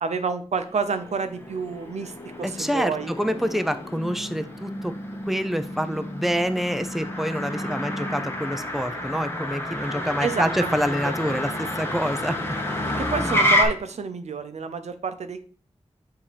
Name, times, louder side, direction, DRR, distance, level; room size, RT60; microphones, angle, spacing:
voice 1, 0.0-2.1 2.4-3.1 10.2-11.1 13.0-15.4, right 5 dB, 80° right, 9 dB, 0.6 m, -29 dB
Motor vehicle (road), 0.6-13.6, left 1 dB, 20° left, 1.2 m, -29 dB
voice 2, 2.4-4.9 5.3-12.4, equal, ahead, 10 dB, 0.5 m, -27 dB
7.4 x 2.8 x 5.0 m, 0.42 s
wide cardioid pair, 85°, 11 cm